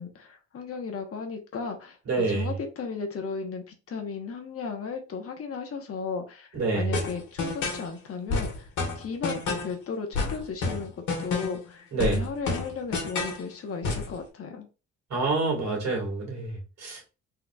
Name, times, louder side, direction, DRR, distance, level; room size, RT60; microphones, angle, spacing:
voice 1, 0.0-6.5 6.7-8.7 8.9-14.7, left 5 dB, 50° left, 0.9 m, -35 dB
voice 2, 2.1-2.5 6.5-7.0 11.9-12.3 15.1-17.1, right 3 dB, 60° right, 1.9 m, -27 dB
sound 1, 6.9-7.9 8.3-9.8 10.1-11.7 12.0-13.4 13.8-14.1, left 4 dB, 70° left, 1.4 m, -29 dB
3.8 x 2.8 x 2.2 m
cardioid pair, 90°, 30 cm